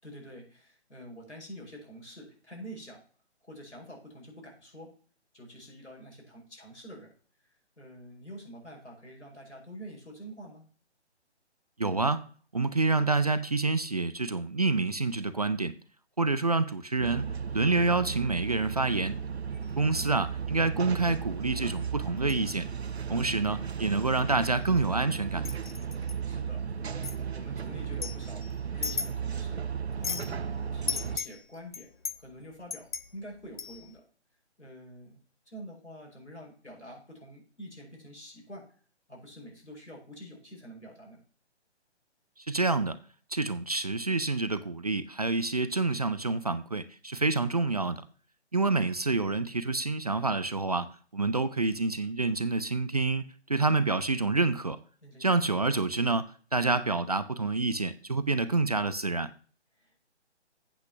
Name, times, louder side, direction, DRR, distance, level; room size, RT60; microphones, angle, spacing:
voice 1, 0.0-3.0 3.4-4.9 5.3-7.1 7.8-10.6 19.7-20.2 26.2-28.4 28.7-29.6 30.0-30.4 30.7-31.9 32.2-34.0 34.6-35.2 35.5-38.6 39.1-41.2 51.5-51.8 55.0-55.7 59.8-60.0, equal, 80° left, 5.4 m, -47 dB
voice 2, 11.8-12.2 12.5-15.8 16.2-19.2 19.8-22.7 23.1-25.5 42.4-43.0 43.3-48.0 48.5-50.9 51.1-53.2 53.5-54.8 55.2-59.3, right 3 dB, 35° right, 0.4 m, -28 dB
sound 1, 17.0-31.2, right 7 dB, 65° right, 0.7 m, -35 dB
sound 2, 19.5-19.8 21.0-21.2 21.8-22.5 22.8-23.0 23.5-23.7 24.0-25.0 25.4-26.1 27.0-27.2 27.8-29.5 29.8-30.4 30.9-34.0, left 5 dB, 45° left, 0.7 m, -37 dB
8.4 x 5.7 x 6.9 m
figure-of-eight pair, 145°, 34 cm